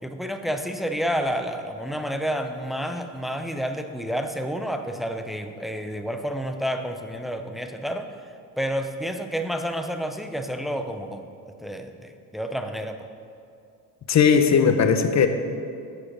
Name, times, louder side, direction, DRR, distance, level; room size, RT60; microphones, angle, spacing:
voice 1, 0.0-8.1 8.6-11.3 11.6-13.1, equal, ahead, 6 dB, 0.5 m, -30 dB
voice 2, 14.1-15.3, left 6 dB, 35° left, 7 dB, 0.8 m, -18 dB
8.6 x 4.9 x 6.1 m, 2.5 s
supercardioid pair, 75°, 48 cm